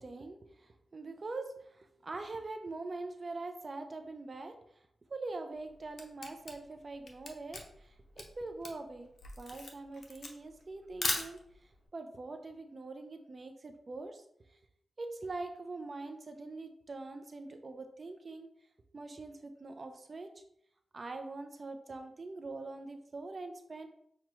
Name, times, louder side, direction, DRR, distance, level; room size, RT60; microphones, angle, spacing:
voice 1, 0.0-4.5 5.1-9.1 9.4-11.4 11.9-14.2 15.0-18.5 18.9-20.3 20.9-23.9, right 3 dB, 45° right, 6 dB, 0.5 m, -43 dB
Camera, 5.5-11.8, left 3 dB, 65° left, 0.7 m, -39 dB
6.0 x 2.2 x 3.0 m, 0.70 s
cardioid pair, 75°, 0 cm